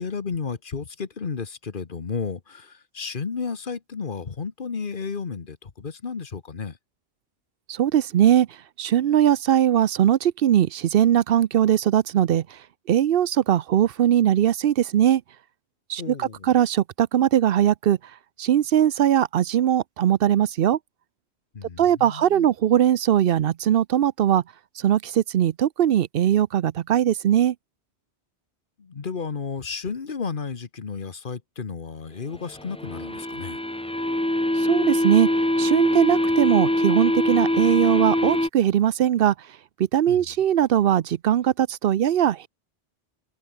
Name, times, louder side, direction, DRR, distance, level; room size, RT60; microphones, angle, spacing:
voice 1, 0.0-6.8 16.0-16.5 21.5-22.5 28.8-33.6 40.1-40.3, left 5 dB, 50° left, 1.4 m, -33 dB
voice 2, 7.8-8.5 8.8-12.4 12.9-15.2 15.9-18.0 18.4-20.8 21.8-24.4 24.8-27.5 34.7-35.3 35.6-39.3 39.9-42.5, right 10 dB, 60° right, 0.7 m, -20 dB
sound 1, 32.5-38.5, left 1 dB, 5° left, 0.7 m, -23 dB
open air
omnidirectional pair, 1.2 m